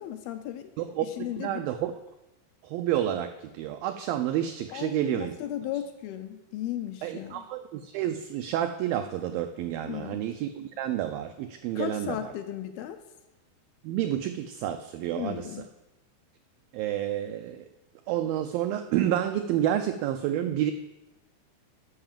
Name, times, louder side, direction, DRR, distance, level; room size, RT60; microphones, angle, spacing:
voice 1, 0.0-0.7 1.0-1.7 4.7-7.4 9.8-10.2 11.8-13.0 15.2-15.7, left 11 dB, 80° left, 8 dB, 2.3 m, -35 dB
voice 2, 0.8-1.9 2.6-5.4 7.0-12.2 13.8-15.4 16.7-17.7 18.1-20.7, right 11 dB, 90° right, 8 dB, 2.0 m, -29 dB
13.0 x 5.8 x 7.3 m, 1.0 s
omnidirectional pair, 4.8 m